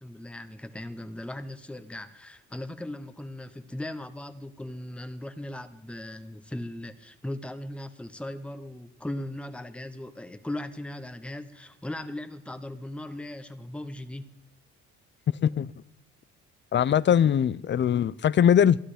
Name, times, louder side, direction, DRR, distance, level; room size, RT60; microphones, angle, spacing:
voice 1, 0.0-14.3, left 1 dB, 5° left, 1.0 m, -38 dB
voice 2, 16.7-18.8, left 9 dB, 40° left, 0.5 m, -21 dB
13.5 x 12.5 x 5.0 m
cardioid pair, 90°, 30 cm